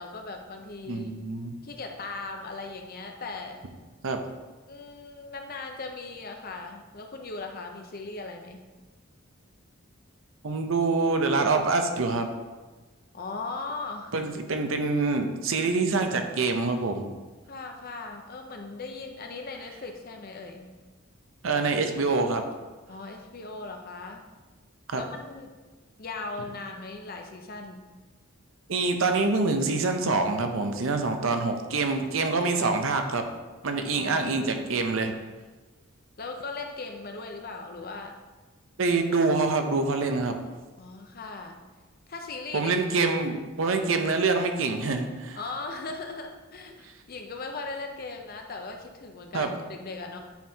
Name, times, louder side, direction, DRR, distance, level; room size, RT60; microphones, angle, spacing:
voice 1, 0.0-1.1 1.6-3.6 4.7-8.6 13.1-14.1 17.5-20.7 22.9-24.2 25.0-25.5 26.0-27.8 34.0-34.3 36.2-38.1 40.8-41.6 42.1-42.7 45.3-50.2, left 3 dB, 45° left, 4 dB, 0.7 m, -38 dB
voice 2, 0.9-1.5 4.0-4.2 10.4-12.3 14.1-17.1 21.4-22.4 24.9-25.0 28.7-33.2 33.6-35.1 38.8-40.4 42.5-45.4 49.3-49.5, right 3 dB, 65° right, 6 dB, 0.7 m, -25 dB
9.2 x 4.5 x 2.8 m, 1.3 s
head